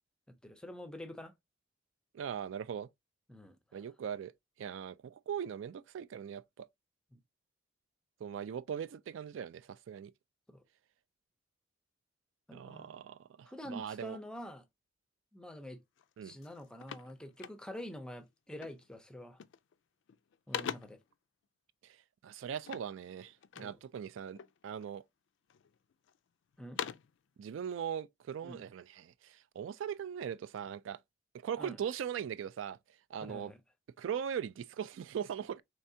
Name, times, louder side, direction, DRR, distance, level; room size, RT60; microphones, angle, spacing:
voice 1, 0.3-1.3 3.3-3.6 7.1-7.2 10.5-10.6 12.5-13.0 13.5-14.6 15.3-15.8 16.2-19.4 20.5-21.0 23.6-23.8 26.6-26.8 28.4-28.6 31.6-31.8 33.2-33.6, equal, 5° left, 0.5 m, -47 dB
voice 2, 2.1-2.9 3.7-4.3 4.6-6.7 8.2-10.1 12.5-14.2 16.2-16.4 21.8-22.0 22.2-24.4 24.6-25.0 27.4-31.0 31.4-32.8 33.1-33.5 34.0-35.6, right 8 dB, 80° right, 0.3 m, -40 dB
sound 1, 16.0-16.1 16.4-18.0 18.6-18.9 19.3-19.8 20.1-21.1 22.6-23.8 24.3-25.0 25.5-26.2 26.5-27.2, left 8 dB, 70° left, 0.3 m, -44 dB
4.5 x 3.3 x 2.7 m
head